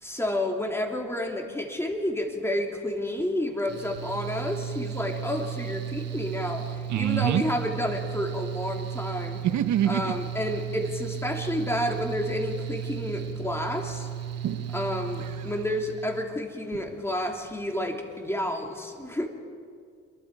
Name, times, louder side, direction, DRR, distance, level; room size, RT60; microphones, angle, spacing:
voice 1, 0.0-9.4 9.8-14.1 14.7-19.3, left 1 dB, 10° left, 2 dB, 3.1 m, -30 dB
Mechanical fan, 3.7-16.2, right 9 dB, 55° right, 2.2 m, -35 dB
voice 2, 6.9-7.4 9.4-10.0 14.4-14.7, right 11 dB, 70° right, 10 dB, 1.1 m, -25 dB
27.5 x 22.5 x 4.9 m, 2.2 s
cardioid pair, 90°, 30 cm